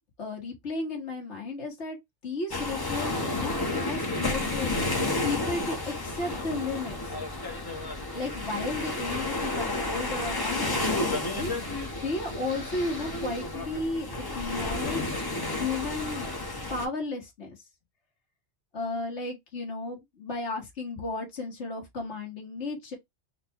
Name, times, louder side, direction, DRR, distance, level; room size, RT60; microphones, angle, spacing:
voice 1, 0.2-2.0 2.2-4.9 5.2-7.1 8.1-15.1 15.4-16.3 16.7-17.5 18.7-23.0, left 2 dB, 70° left, 1.7 m, -34 dB
sound 1, 2.5-16.8, left 2 dB, 20° left, 0.8 m, -31 dB
4.1 x 2.3 x 4.3 m
omnidirectional pair, 1.2 m